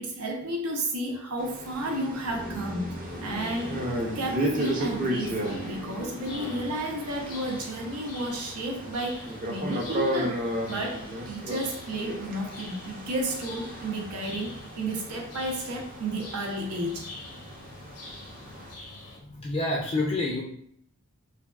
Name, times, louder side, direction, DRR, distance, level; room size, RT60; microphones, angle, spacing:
voice 1, 0.0-17.1, right 1 dB, 85° right, 1 dB, 0.7 m, -32 dB
sound 1, 1.4-18.7, right 1 dB, 35° right, 0.5 m, -35 dB
sound 2, 2.2-8.3 8.5-8.6, right 1 dB, 60° right, 0.8 m, -40 dB
sound 3, 3.0-19.2, left 2 dB, 85° left, 0.7 m, -45 dB
voice 2, 19.2-20.4, left 2 dB, 25° left, -3 dB, 0.3 m, -28 dB
3.3 x 2.3 x 2.3 m, 0.67 s
head